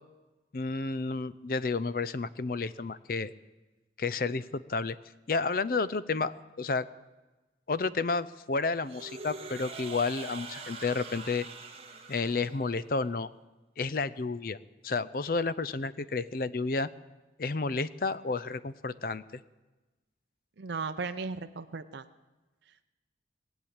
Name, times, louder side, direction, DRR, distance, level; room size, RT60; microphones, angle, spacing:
voice 1, 0.5-3.3 4.0-5.0 5.3-6.8 7.7-11.5 12.1-13.3 13.8-14.6 14.8-16.9 17.4-19.4, left 4 dB, 50° left, 16 dB, 0.5 m, -31 dB
sound 1, 8.8-12.9, right 4 dB, 35° right, 1.7 m, -44 dB
voice 2, 20.6-22.1, right 4 dB, 75° right, 8 dB, 0.6 m, -36 dB
19.5 x 8.2 x 8.7 m, 1.1 s
head